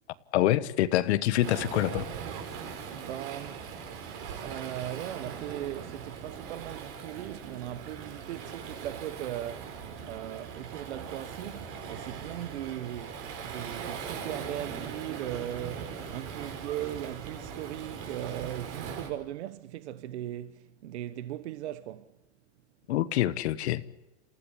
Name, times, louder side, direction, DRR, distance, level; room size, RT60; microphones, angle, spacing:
voice 1, 0.3-2.1 22.9-23.8, left 14 dB, 75° left, 1.2 m, -26 dB
Waves surf, 1.4-19.1, right 6 dB, 40° right, 4.9 m, -40 dB
voice 2, 2.9-3.7 4.3-22.1, right 13 dB, 75° right, 1.2 m, -38 dB
28.5 x 15.5 x 8.4 m
supercardioid pair, 155°, 33 cm